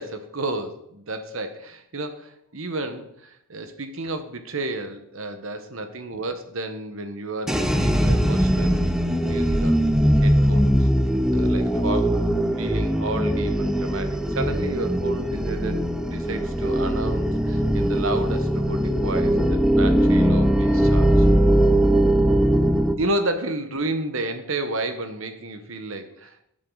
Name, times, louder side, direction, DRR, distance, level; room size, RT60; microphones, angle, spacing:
voice 1, 0.0-8.8 9.2-9.9 10.2-10.9 11.3-21.3 23.0-26.4, right 2 dB, 65° right, 8 dB, 1.3 m, -31 dB
sound 1, 7.5-22.9, equal, ahead, 0.6 m, -20 dB
13.0 x 7.6 x 4.0 m, 0.77 s
head